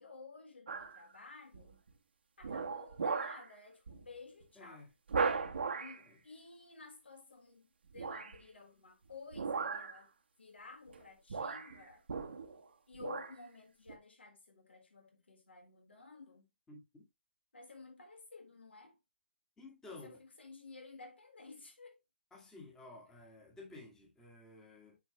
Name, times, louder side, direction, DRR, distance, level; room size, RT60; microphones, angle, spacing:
voice 1, 0.0-1.8 2.4-4.9 5.8-10.1 10.4-12.1 12.9-16.5 17.5-19.0 19.9-22.0, left 4 dB, 75° left, 3.9 m, -53 dB
sound 1, 0.7-1.0 1.5-1.9 2.4-3.5 3.9-4.0 4.4-4.5 5.1-6.0 7.9-8.4 9.3-10.0 10.9-11.0 11.3-12.6 12.9-13.4 13.9-14.0, right 5 dB, 70° right, 1.4 m, -37 dB
voice 2, 4.6-4.9 6.1-6.2 16.7-16.8 19.6-20.2 22.3-25.0, left 2 dB, 10° left, 1.9 m, -53 dB
9.1 x 4.7 x 3.2 m
hypercardioid pair, 150°, 6 cm